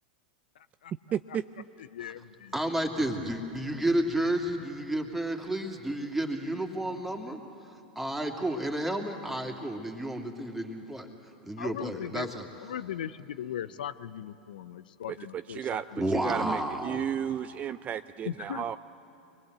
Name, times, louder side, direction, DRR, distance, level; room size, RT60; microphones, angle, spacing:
voice 1, 0.6-0.9 1.9-2.5 11.6-12.3 12.6-16.6 18.2-18.8, left 10 dB, 75° left, 14 dB, 0.6 m, -39 dB
voice 2, 1.1-1.7 15.1-18.8, right 9 dB, 30° right, 12 dB, 0.4 m, -33 dB
voice 3, 2.5-7.4 8.0-11.1 11.4-12.5 16.0-17.0, right 1 dB, 5° right, 2 dB, 2.7 m, -31 dB
25.0 x 20.5 x 8.0 m, 3.0 s
hypercardioid pair, 100°, 5 cm